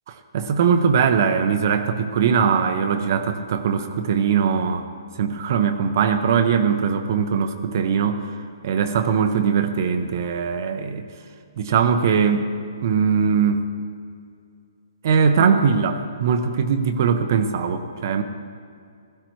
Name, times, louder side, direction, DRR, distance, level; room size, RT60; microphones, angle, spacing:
voice 1, 0.3-4.9 5.2-11.0 11.6-12.5 12.8-13.6 15.0-18.2, right 6 dB, 40° right, 8 dB, 0.6 m, -21 dB
16.0 x 13.5 x 3.1 m, 2.3 s
hypercardioid pair, 170°, 3 cm